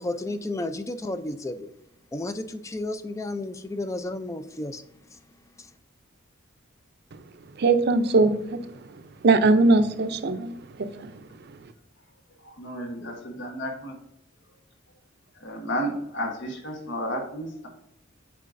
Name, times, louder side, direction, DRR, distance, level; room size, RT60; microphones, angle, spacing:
voice 1, 0.0-1.7 2.1-4.8 5.1-5.2 5.6-5.7, left 2 dB, 15° left, 0.4 m, -32 dB
voice 2, 7.6-8.3 9.2-10.5 10.8-11.1, right 3 dB, 55° right, 0.5 m, -20 dB
voice 3, 12.6-13.9 15.4-17.7, equal, 60° left, 1.2 m, -32 dB
8.3 x 4.7 x 2.6 m
head